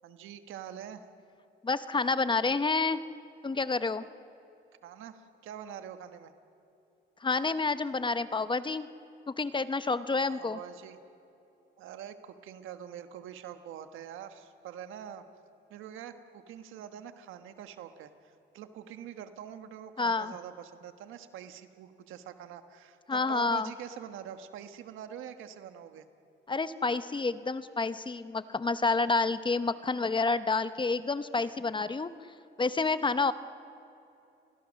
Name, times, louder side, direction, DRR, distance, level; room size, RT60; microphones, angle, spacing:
voice 1, 0.0-1.0 4.8-6.3 10.3-11.0 11.8-15.2 15.7-26.1, right 9 dB, 90° right, 8 dB, 1.3 m, -45 dB
voice 2, 1.6-3.0 3.4-4.1 7.2-8.9 9.3-10.6 20.0-20.3 23.1-23.7 26.5-32.1 32.6-33.3, left 3 dB, 25° left, 12 dB, 0.9 m, -29 dB
29.5 x 21.0 x 6.4 m, 2.8 s
cardioid pair, 90°, 20 cm